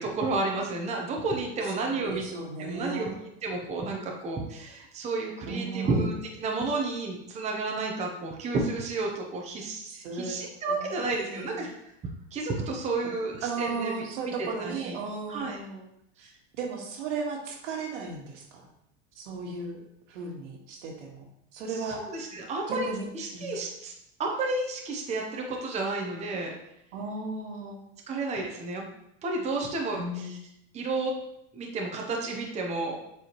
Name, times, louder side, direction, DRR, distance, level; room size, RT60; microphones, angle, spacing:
voice 1, 0.0-2.3 2.6-3.1 3.4-11.7 12.3-14.0 14.4-15.0 15.3-15.6 21.7-22.9 23.1-23.9 24.2-26.5 28.1-28.8 29.2-30.2 30.7-31.1 31.5-33.0, right 3 dB, 20° right, 0 dB, 0.8 m, -31 dB
voice 2, 1.8-3.2 5.5-6.1 9.8-10.4 10.7-11.6 13.4-15.8 16.2-18.7 19.1-19.8 20.1-21.3 21.5-22.0 22.7-23.0 23.3-23.7 26.9-27.8 29.9-30.3, right 3 dB, 80° right, 1 dB, 1.7 m, -35 dB
7.3 x 4.9 x 3.1 m, 0.78 s
supercardioid pair, 150°, 36 cm